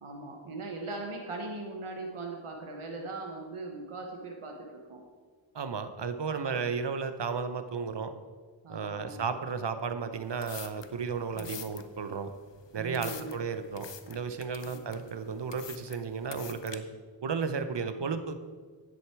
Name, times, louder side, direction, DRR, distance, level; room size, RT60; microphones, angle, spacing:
voice 1, 0.0-5.0 6.3-6.7 8.6-9.2 11.4-11.5 12.7-13.4 14.7-14.9 18.0-18.1, right 3 dB, 85° right, 1 dB, 1.2 m, -40 dB
voice 2, 5.5-8.1 8.7-12.3 12.7-16.8 17.2-18.3, right 5 dB, 55° right, 9 dB, 0.9 m, -34 dB
sound 1, 10.1-16.8, left 7 dB, 60° left, 0.8 m, -46 dB
10.0 x 7.9 x 4.7 m, 1.5 s
wide cardioid pair, 55°, 49 cm